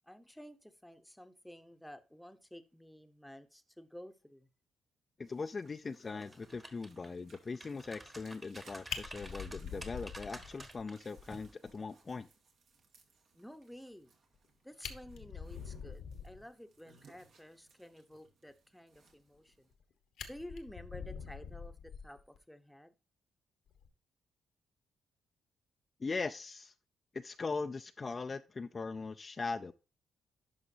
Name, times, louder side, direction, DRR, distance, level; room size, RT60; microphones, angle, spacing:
voice 1, 0.1-4.5 13.3-14.1 14.6-19.7 20.3-22.9, equal, 5° left, 0.9 m, -52 dB
voice 2, 5.2-12.3 26.0-26.7 27.1-29.7, left 4 dB, 35° left, 0.4 m, -40 dB
sound 1, 5.2-19.7, right 4 dB, 70° right, 1.9 m, -66 dB
sound 2, 6.1-7.1 7.5-10.9 11.3-11.5, right 1 dB, 20° right, 1.3 m, -50 dB
Fire, 8.6-8.7 8.9-10.8 11.2-11.3 11.6-11.7 12.1-12.2 14.3-14.4 14.7-16.5 19.3-19.8 20.2-22.4 23.7-23.9, left 7 dB, 85° left, 1.1 m, -45 dB
11.0 x 5.1 x 2.7 m
cardioid pair, 85°, 0 cm